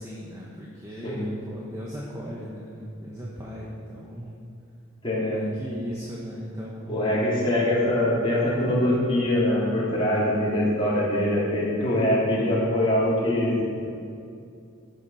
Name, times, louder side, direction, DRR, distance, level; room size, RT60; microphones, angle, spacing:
voice 1, 0.0-4.3 5.2-7.2, equal, 15° right, -5 dB, 1.2 m, -37 dB
voice 2, 5.0-5.4 6.9-13.5, left 1 dB, 25° left, -8 dB, 3.3 m, -23 dB
13.5 x 7.2 x 5.8 m, 2.4 s
head